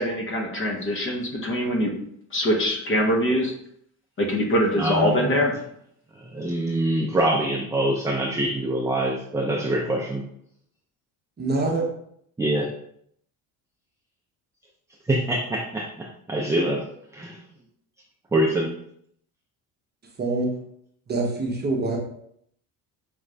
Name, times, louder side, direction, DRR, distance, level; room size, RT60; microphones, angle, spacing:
voice 1, 0.0-1.9 2.3-3.5 4.2-5.5, equal, 30° left, 1 dB, 0.9 m, -23 dB
voice 2, 4.8-5.3 6.2-10.2 12.4-12.7 15.1-16.8 17.1-17.4 18.3-18.7, right 1 dB, 10° right, -2 dB, 0.4 m, -24 dB
voice 3, 11.4-11.9 20.2-20.5 21.1-22.0, right 2 dB, 25° right, 0 dB, 0.8 m, -25 dB
5.1 x 2.4 x 3.3 m, 0.69 s
cardioid pair, 135°, 39 cm